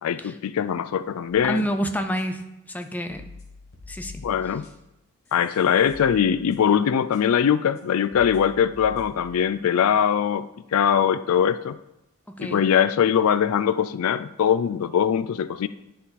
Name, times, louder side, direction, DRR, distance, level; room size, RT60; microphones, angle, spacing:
voice 1, 0.0-1.6 4.2-4.6 5.3-11.8 12.4-15.7, left 8 dB, 80° left, 14 dB, 0.4 m, -22 dB
sound 1, 1.3-1.8 2.2-2.3 2.8-5.0 5.3-6.8 7.1-7.2 7.8-7.9 8.1-9.5, left 3 dB, 50° left, 1.7 m, -46 dB
voice 2, 1.5-3.3 3.9-4.2 12.3-12.6, equal, 5° left, 6 dB, 0.4 m, -28 dB
11.0 x 3.9 x 4.1 m, 0.91 s
head